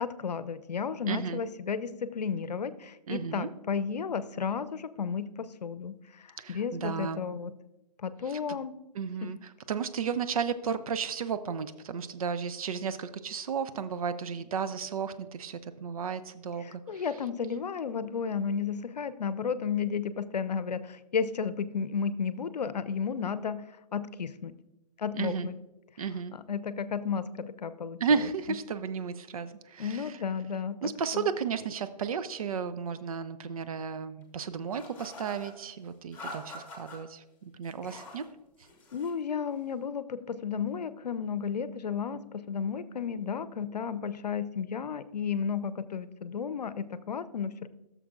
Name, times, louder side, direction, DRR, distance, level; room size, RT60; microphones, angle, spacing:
voice 1, 0.0-7.5 8.0-8.7 9.2-9.3 16.6-23.6 23.9-24.5 25.0-25.6 26.3-28.0 29.8-31.2 38.9-47.7, left 6 dB, 75° left, 15 dB, 0.6 m, -33 dB
voice 2, 1.1-1.4 3.1-3.5 6.4-7.2 8.3-8.6 8.9-17.0 25.1-25.5 26.0-26.3 28.0-30.2 30.8-38.3, right 6 dB, 60° right, 12 dB, 0.6 m, -33 dB
sound 1, 34.7-35.5 36.1-37.0 37.6-38.3 38.6-39.2, left 1 dB, 10° left, 1.8 m, -45 dB
14.5 x 6.8 x 2.5 m, 0.98 s
figure-of-eight pair, 140°, 21 cm